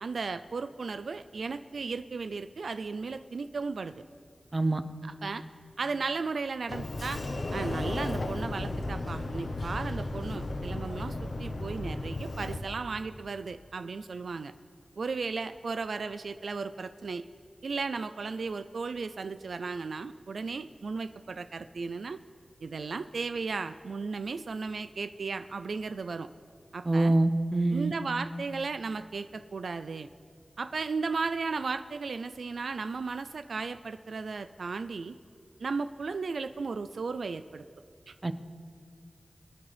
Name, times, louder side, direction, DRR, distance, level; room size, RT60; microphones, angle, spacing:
voice 1, 0.0-4.0 5.0-5.4 5.8-7.2 7.5-14.5 15.0-17.2 17.6-22.2 22.6-26.3 26.7-27.2 27.7-30.1 30.6-35.2 35.6-37.6 38.1-38.2, right 4 dB, 85° right, 11 dB, 0.3 m, -35 dB
Sliding door, 6.7-12.6, left 2 dB, 65° left, 1.1 m, -34 dB
voice 2, 26.8-27.9 38.2-38.3, right 2 dB, 35° right, 11 dB, 0.7 m, -25 dB
23.0 x 9.6 x 3.4 m, 2.4 s
wide cardioid pair, 65°, 0 cm